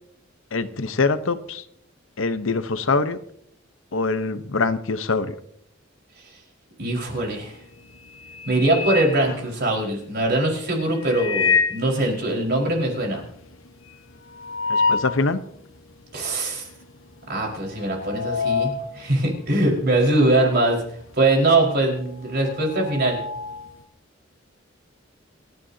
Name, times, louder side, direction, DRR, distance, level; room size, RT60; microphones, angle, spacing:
voice 1, 0.5-1.6 2.2-3.2 3.9-5.4 14.7-15.4, left 3 dB, 75° left, 10 dB, 1.0 m, -24 dB
voice 2, 6.8-7.6 8.5-13.2 16.1-16.7 17.3-20.8 21.2-23.2, right 2 dB, 55° right, -1 dB, 4.8 m, -22 dB
sound 1, 7.2-7.5 7.9-10.0 11.0-11.9 12.3-12.4 12.6-12.7 13.1-15.3 15.8-15.9 16.7-17.0 17.2-20.5 20.8-23.8, left 5 dB, 90° left, 1.3 m, -27 dB
28.5 x 10.5 x 2.8 m, 0.70 s
head